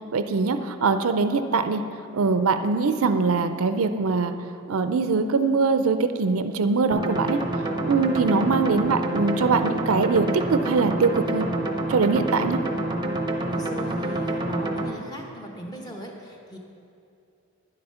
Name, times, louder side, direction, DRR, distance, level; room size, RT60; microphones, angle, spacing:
voice 1, 0.1-1.8 2.1-4.3 4.7-7.4 7.8-11.5 11.9-12.6, right 4 dB, 70° right, 9 dB, 0.5 m, -22 dB
sound 1, 6.9-14.9, right 1 dB, 20° right, 0.7 m, -27 dB
voice 2, 13.5-16.6, equal, 20° left, 1 dB, 1.0 m, -39 dB
10.0 x 7.9 x 5.6 m, 2.7 s
head